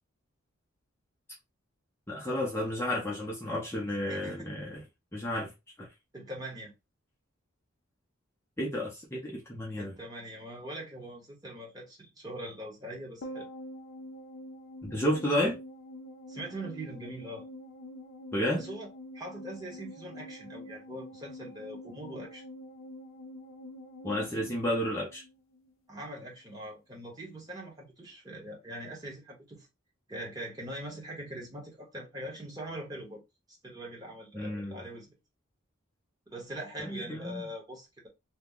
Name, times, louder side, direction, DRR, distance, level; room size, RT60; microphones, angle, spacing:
voice 1, 2.1-4.8 5.1-5.5 5.8-5.9 8.6-9.9 14.8-15.6 18.3-18.6 24.0-25.2 34.3-34.8 36.8-37.4, left 1 dB, 10° left, 0.6 m, -31 dB
voice 2, 4.1-4.5 6.1-6.7 9.8-13.5 16.3-17.4 18.5-18.9 19.1-22.4 25.9-29.7 30.1-33.2 33.6-35.2 36.3-38.1, right 1 dB, 20° right, 1.0 m, -42 dB
sound 1, 13.2-25.7 26.0-26.1, left 1 dB, 70° left, 0.5 m, -46 dB
2.9 x 2.2 x 3.6 m
head